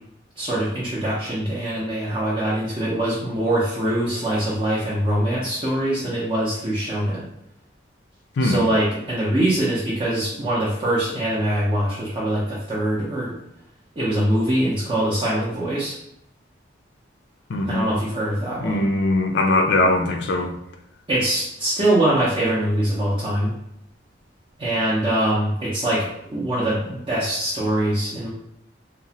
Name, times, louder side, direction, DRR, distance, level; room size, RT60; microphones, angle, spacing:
voice 1, 0.4-7.2 8.4-13.4 14.0-15.9 17.7-18.8 21.1-23.5 24.6-28.3, right 1 dB, 25° right, -7 dB, 0.5 m, -23 dB
voice 2, 17.5-17.9 18.6-20.5, left 2 dB, 60° left, 4 dB, 0.4 m, -20 dB
2.9 x 2.0 x 2.7 m, 0.77 s
head